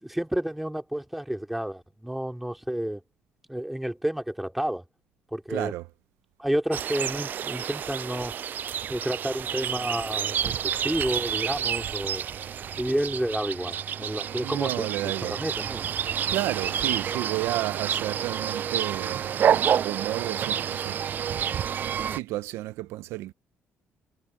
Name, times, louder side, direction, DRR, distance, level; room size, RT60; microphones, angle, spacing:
voice 1, 0.0-3.0 3.5-4.8 5.3-5.7 6.4-8.3 8.9-12.2 12.8-15.0 15.2-15.9, right 1 dB, 5° right, 3.0 m, -30 dB
voice 2, 5.5-5.9 14.4-15.4 16.3-23.3, right 16 dB, 90° right, 0.7 m, -32 dB
sound 1, 6.7-22.2, right 9 dB, 45° right, 0.4 m, -29 dB
Wind instrument woodwind instrument, 10.6-14.9, left 2 dB, 15° left, 5.8 m, -53 dB
cardioid pair, 115°, 4 cm